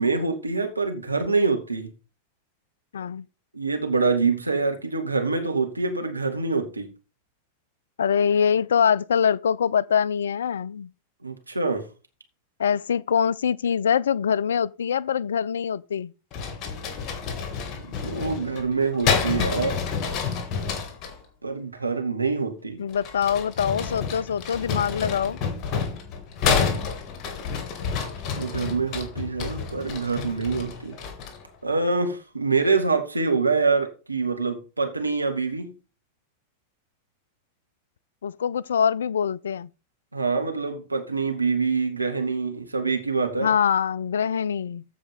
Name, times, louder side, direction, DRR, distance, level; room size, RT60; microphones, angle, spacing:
voice 1, 0.0-1.9 3.5-6.9 11.2-11.9 17.7-19.8 21.4-22.8 28.4-31.0 31.6-35.7 40.1-43.5, right 4 dB, 80° right, 1.9 m, -25 dB
voice 2, 2.9-3.3 8.0-10.9 12.6-16.1 22.8-25.4 38.2-39.7 43.4-44.8, left 7 dB, 65° left, 0.4 m, -24 dB
sound 1, 16.3-21.2 22.9-31.5, left 6 dB, 35° left, 2.7 m, -29 dB
15.0 x 5.1 x 3.7 m
figure-of-eight pair, 90°, 0 cm